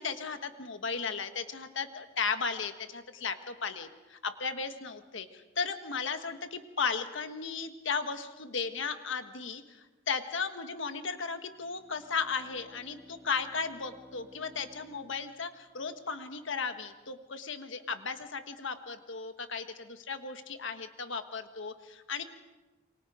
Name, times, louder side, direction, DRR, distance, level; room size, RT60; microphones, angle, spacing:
voice 1, 0.0-22.2, left 5 dB, 60° left, 8 dB, 1.5 m, -35 dB
Bowed string instrument, 11.5-16.3, left 1 dB, 10° right, 2.1 m, -57 dB
28.0 x 24.5 x 5.1 m, 1.1 s
head